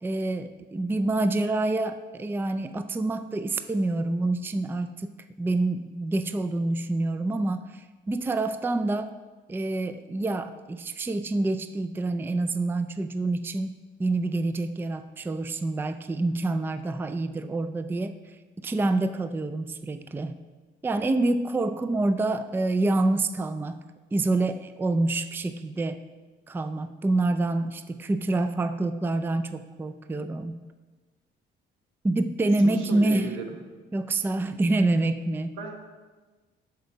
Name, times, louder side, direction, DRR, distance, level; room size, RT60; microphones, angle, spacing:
voice 1, 0.0-5.1 5.4-9.1 9.5-13.7 14.0-18.1 18.6-20.4 20.8-23.8 24.1-26.0 26.5-30.6 32.0-33.3 33.9-35.6, right 2 dB, 10° right, 10 dB, 0.3 m, -27 dB
voice 2, 32.6-33.6 35.6-35.8, right 3 dB, 85° right, 2 dB, 1.3 m, -34 dB
6.7 x 6.5 x 4.5 m, 1.3 s
cardioid pair, 90°, 20 cm